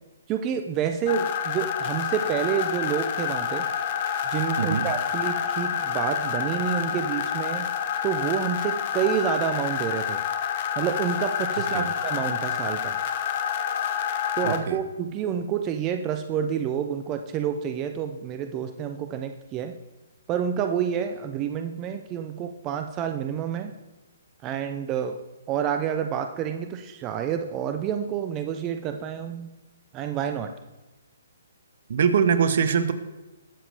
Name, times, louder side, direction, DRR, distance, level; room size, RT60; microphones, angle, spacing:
voice 1, 0.3-3.7 4.3-7.7 8.0-10.2 10.8-13.0 14.4-19.8 20.3-23.7 24.4-25.2 25.5-29.5 29.9-30.5, right 8 dB, 25° right, 7 dB, 0.7 m, -28 dB
sound 1, 1.1-14.6, left 8 dB, 40° left, 1.1 m, -28 dB
voice 2, 14.4-14.8 31.9-32.9, right 7 dB, 55° right, 11 dB, 1.1 m, -23 dB
21.5 x 7.2 x 3.4 m, 1.1 s
figure-of-eight pair, 130°, 0 cm